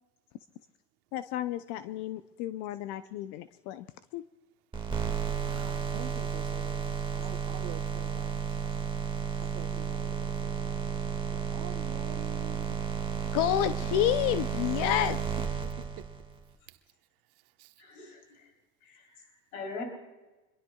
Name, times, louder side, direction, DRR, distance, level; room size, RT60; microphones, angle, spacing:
voice 1, 1.1-3.9 4.1-4.2 13.3-15.2, left 12 dB, 65° left, 0.7 m, -30 dB
sound 1, 4.7-16.4, right 6 dB, 10° right, 1.9 m, -33 dB
voice 2, 5.4-8.9 9.4-12.8 13.2-13.3 15.6-16.1 16.7-16.8 17.6-17.7, right 14 dB, 80° right, 1.3 m, -48 dB
voice 3, 17.8-18.5 18.8-19.8, left 4 dB, 90° left, 3.7 m, -43 dB
26.5 x 22.0 x 2.4 m
supercardioid pair, 100°, 43 cm